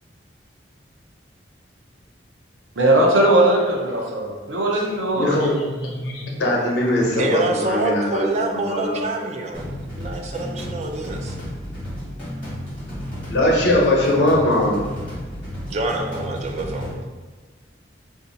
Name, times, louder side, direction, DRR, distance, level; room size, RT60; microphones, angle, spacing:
voice 1, 2.8-5.3, right 1 dB, 90° right, -1 dB, 0.7 m, -18 dB
voice 2, 5.1-9.0 13.3-14.8, left 1 dB, 70° left, -2 dB, 0.7 m, -21 dB
voice 3, 7.1-9.7 10.0-11.4 15.7-16.9, right 2 dB, 35° right, 2 dB, 0.3 m, -26 dB
sound 1, 9.5-16.9, equal, 10° left, 1.2 m, -32 dB
2.6 x 2.4 x 3.8 m, 1.4 s
head